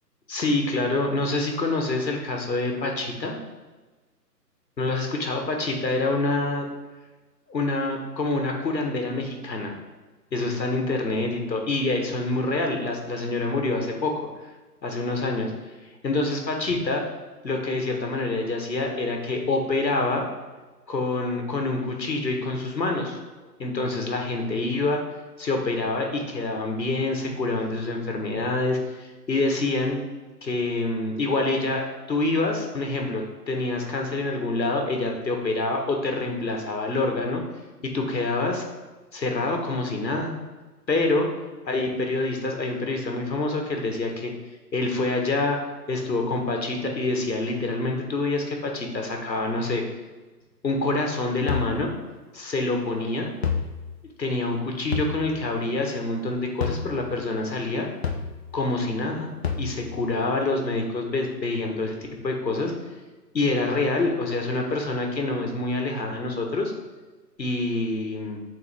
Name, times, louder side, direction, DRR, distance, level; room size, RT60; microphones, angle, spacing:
voice 1, 0.3-3.4 4.8-6.6 7.5-9.8 10.3-14.1 14.8-15.5 16.0-17.0 17.4-20.3 20.9-23.2 23.6-25.0 25.4-30.0 30.4-37.4 37.8-38.6 39.1-40.3 40.9-41.3 41.7-44.3 44.7-45.6 45.9-49.8 50.6-51.9 52.3-53.3 54.2-57.9 58.5-59.3 59.6-62.0 62.2-62.7 63.3-66.7 67.4-68.4, left 2 dB, 85° left, 2 dB, 1.5 m, -26 dB
sound 1, 51.5-51.7 53.4-53.7 54.9-55.1 56.6-56.8 58.0-58.3 59.4-59.7, left 6 dB, 40° left, 0.7 m, -26 dB
7.0 x 4.2 x 3.5 m, 1.3 s
figure-of-eight pair, 140°, 50 cm